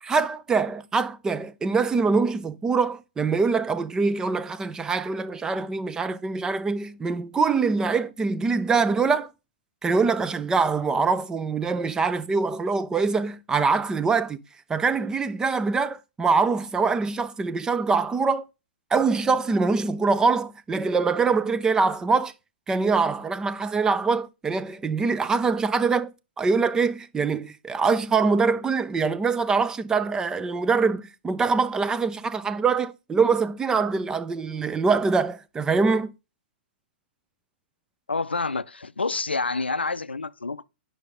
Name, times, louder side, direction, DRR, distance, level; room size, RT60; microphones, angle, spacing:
voice 1, 0.0-9.3 9.8-14.4 14.7-18.4 18.9-22.3 22.7-26.1 26.4-36.1, right 4 dB, 10° right, 0.4 m, -24 dB
voice 2, 38.1-40.6, left 3 dB, 85° left, 0.4 m, -28 dB
9.2 x 5.4 x 3.7 m
figure-of-eight pair, 110°, 6 cm